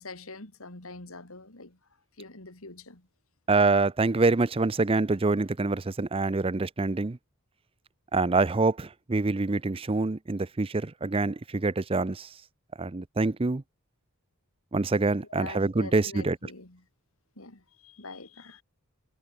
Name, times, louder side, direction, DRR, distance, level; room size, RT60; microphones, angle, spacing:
voice 1, 0.0-1.8 2.2-3.1 15.3-16.8 17.4-18.6, left 3 dB, 70° left, 3.3 m, -44 dB
voice 2, 3.5-7.2 8.1-12.3 12.8-13.6 14.7-16.4, right 3 dB, 25° right, 0.6 m, -26 dB
head